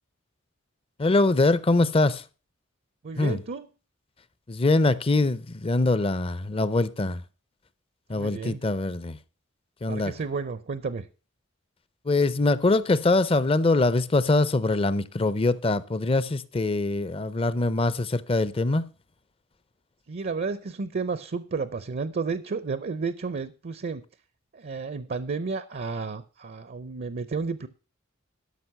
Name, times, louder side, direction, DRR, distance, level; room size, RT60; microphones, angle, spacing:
voice 1, 1.0-2.2 3.2-3.4 4.5-7.2 8.1-9.2 9.8-10.1 12.1-18.9, left 2 dB, 25° left, 0.5 m, -23 dB
voice 2, 3.0-3.7 8.1-8.6 9.9-11.1 20.1-24.0 24.5-27.7, right 4 dB, 50° right, 0.5 m, -32 dB
12.5 x 5.9 x 5.8 m
head